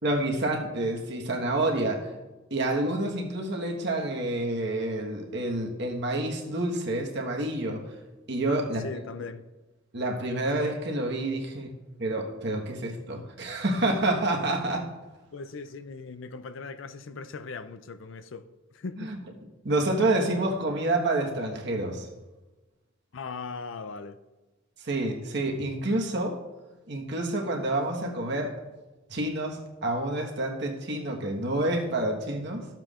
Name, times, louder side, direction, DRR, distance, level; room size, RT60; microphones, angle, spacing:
voice 1, 0.0-2.1 2.5-7.8 8.3-8.8 9.9-11.7 12.0-14.9 19.0-19.2 19.6-22.1 24.8-26.4 26.9-28.5 29.1-32.7, right 2 dB, 55° right, 1.4 m, -28 dB
voice 2, 8.5-9.5 11.3-11.5 15.3-19.1 23.1-24.2, left 4 dB, 65° left, 0.5 m, -39 dB
13.5 x 7.4 x 2.5 m
head